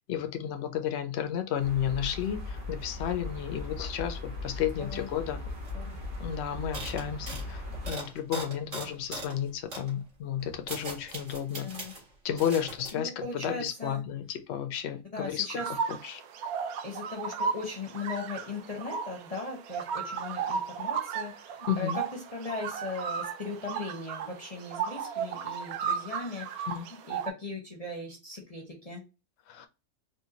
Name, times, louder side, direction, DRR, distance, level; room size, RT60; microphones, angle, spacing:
voice 1, 0.1-5.4 6.2-11.7 12.2-16.2 21.7-22.0 26.7-26.9 29.5-29.7, left 9 dB, 55° left, 0.8 m, -32 dB
sound 1, 1.6-7.9, left 2 dB, 40° right, 1.2 m, -38 dB
sound 2, 5.6-6.2 6.7-9.4 9.7-9.9 10.4-12.0 12.4-12.9, right 2 dB, 60° right, 2.1 m, -40 dB
voice 2, 11.5-11.9 12.9-14.0 15.1-15.7 16.8-22.0 22.3-26.7 27.0-29.0, left 3 dB, 30° left, 0.9 m, -38 dB
sound 3, 15.6-27.3, right 6 dB, 80° right, 1.1 m, -35 dB
4.4 x 2.6 x 2.7 m
omnidirectional pair, 1.5 m